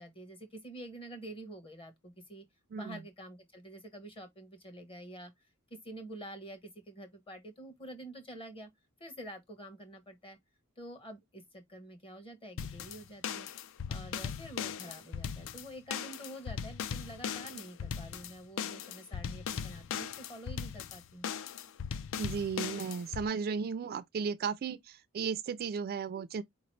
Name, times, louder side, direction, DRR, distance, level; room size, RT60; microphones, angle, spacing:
voice 1, 0.0-2.5 2.7-5.3 5.7-8.7 9.0-10.4 10.8-13.5 13.9-21.3, right 1 dB, 25° left, 1.1 m, -47 dB
sound 1, 12.6-23.3, left 7 dB, 60° left, 0.4 m, -39 dB
voice 2, 22.2-26.4, right 6 dB, 45° right, 0.3 m, -35 dB
4.6 x 2.9 x 3.1 m
head